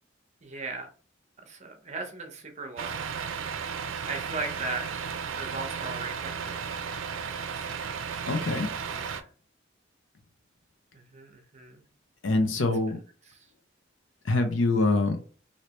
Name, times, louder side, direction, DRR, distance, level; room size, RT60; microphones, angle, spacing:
voice 1, 0.4-0.9 1.4-3.7 4.0-6.8 7.2-7.9 8.9-9.3 10.9-11.8 13.2-13.4, right 3 dB, 35° right, 4 dB, 0.7 m, -39 dB
Truck, 2.8-9.2, right 6 dB, 90° right, 0.4 m, -34 dB
voice 2, 8.3-8.7 12.2-13.0 14.3-15.2, left 2 dB, 80° left, 6 dB, 0.7 m, -24 dB
3.2 x 2.7 x 2.9 m, 0.39 s
head